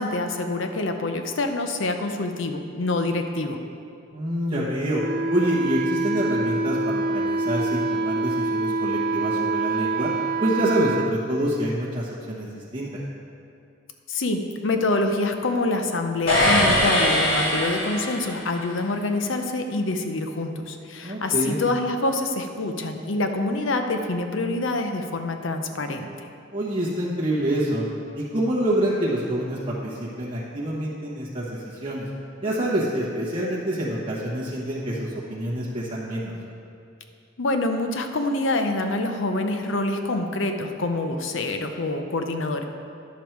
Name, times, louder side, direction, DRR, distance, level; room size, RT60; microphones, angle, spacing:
voice 1, 0.0-3.6 14.1-26.1 37.4-42.6, left 2 dB, 65° left, 6 dB, 0.7 m, -26 dB
voice 2, 4.1-5.0 5.3-10.1 10.4-13.0 21.0-21.6 26.5-27.8 28.1-32.1 32.4-36.3, right 1 dB, 25° right, -8 dB, 1.2 m, -26 dB
Wind instrument woodwind instrument, 4.9-11.1, right 2 dB, 50° right, 0.5 m, -25 dB
sound 1, 16.3-18.5, left 1 dB, 50° left, 2.2 m, -21 dB
10.5 x 7.2 x 4.5 m, 2.5 s
head